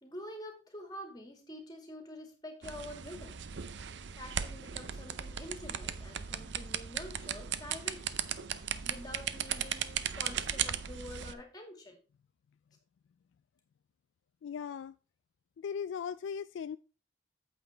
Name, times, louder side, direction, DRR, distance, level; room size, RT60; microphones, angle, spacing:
voice 1, 0.0-3.4 4.2-8.2 8.5-12.0, left 1 dB, 20° left, 2.1 m, -47 dB
sound 1, 2.6-11.3, right 9 dB, 70° right, 0.6 m, -37 dB
voice 2, 14.4-15.0 15.6-16.8, left 7 dB, 80° left, 0.3 m, -38 dB
8.8 x 7.8 x 3.4 m
head